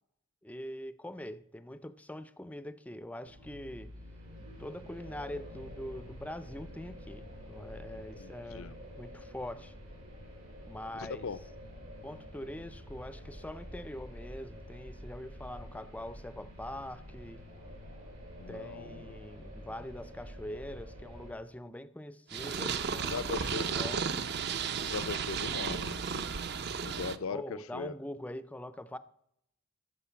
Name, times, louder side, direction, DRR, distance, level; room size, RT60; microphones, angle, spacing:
voice 1, 0.4-3.9 4.6-9.7 10.6-11.3 12.0-17.4 18.5-24.1 27.3-29.0, left 1 dB, 5° left, 0.4 m, -43 dB
sound 1, 3.2-21.3, equal, 85° right, 5.4 m, -48 dB
voice 2, 8.1-8.8 10.9-11.4 18.4-19.2 23.1-24.0 24.8-26.2 26.8-27.9, left 5 dB, 75° left, 0.5 m, -39 dB
Purr, 22.3-27.2, right 6 dB, 50° right, 0.5 m, -34 dB
14.0 x 5.1 x 7.0 m
head